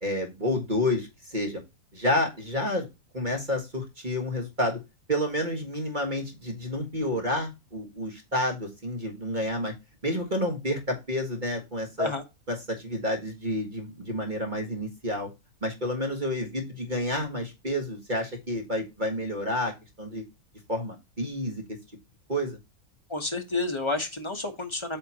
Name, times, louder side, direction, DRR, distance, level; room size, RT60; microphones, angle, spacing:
voice 1, 0.0-1.6 1.9-2.9 3.1-4.8 5.1-9.7 10.0-12.1 12.5-15.3 15.6-20.2 20.7-21.6 22.3-22.6, left 1 dB, 30° right, 2 dB, 1.8 m, -29 dB
voice 2, 23.1-25.0, left 3 dB, 20° left, 4 dB, 1.2 m, -30 dB
8.7 x 5.6 x 2.9 m, 0.24 s
omnidirectional pair, 1.6 m